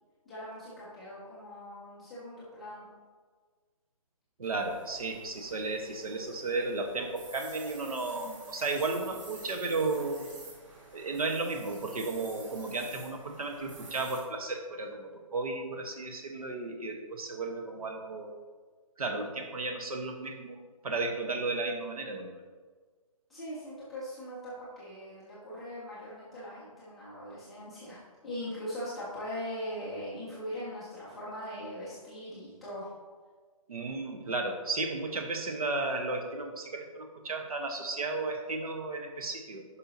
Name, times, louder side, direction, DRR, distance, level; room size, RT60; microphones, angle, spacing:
voice 1, 0.2-2.9 23.3-32.9, equal, ahead, -13 dB, 0.3 m, -41 dB
sound 1, 4.4-14.2, right 2 dB, 60° right, 2.2 m, -50 dB
voice 2, 4.4-10.3 10.9-18.4 19.0-22.4 33.7-39.7, right 3 dB, 85° right, 4 dB, 1.2 m, -34 dB
9.9 x 5.6 x 2.8 m, 1.5 s
hypercardioid pair, 170°, 18 cm